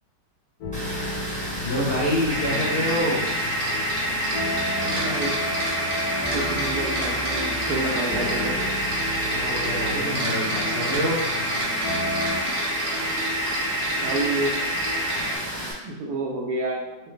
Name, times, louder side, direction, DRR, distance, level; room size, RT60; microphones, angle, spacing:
sound 1, 0.6-12.4, left 2 dB, 70° left, 1.2 m, -34 dB
Water, 0.7-15.7, equal, 15° right, 0.9 m, -32 dB
voice 1, 1.6-3.3 9.3-11.2, equal, 45° left, -8 dB, 0.8 m, -26 dB
sound 2, 2.3-15.4, right 1 dB, 45° right, 0.9 m, -27 dB
voice 2, 4.8-5.3 6.3-8.6 14.0-14.7 15.4-15.5 15.8-17.0, right 2 dB, 70° right, 0 dB, 1.1 m, -29 dB
4.6 x 2.1 x 3.1 m, 0.95 s
omnidirectional pair, 1.8 m